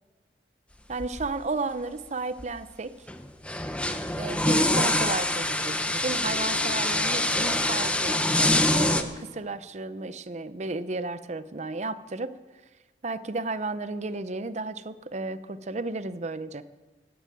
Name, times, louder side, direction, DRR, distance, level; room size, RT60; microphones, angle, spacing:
voice 1, 0.9-2.9 4.2-12.3 13.0-16.6, right 3 dB, 40° right, 13 dB, 0.6 m, -33 dB
sound 1, 1.0-1.3 2.4-2.5 3.1-9.0, left 1 dB, 5° left, 0.8 m, -25 dB
sound 2, 6.1-9.1, left 3 dB, 85° left, 2.4 m, -43 dB
16.5 x 10.0 x 7.7 m, 1.3 s
head